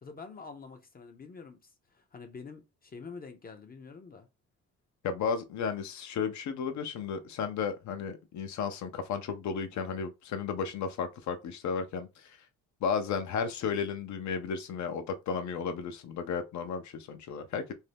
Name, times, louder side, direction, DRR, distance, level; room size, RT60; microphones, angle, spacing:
voice 1, 0.0-4.3, left 4 dB, 30° left, 0.5 m, -47 dB
voice 2, 5.0-12.4 12.8-17.7, left 6 dB, 70° left, 0.6 m, -33 dB
2.6 x 2.2 x 3.3 m
cardioid pair, 90°, 30 cm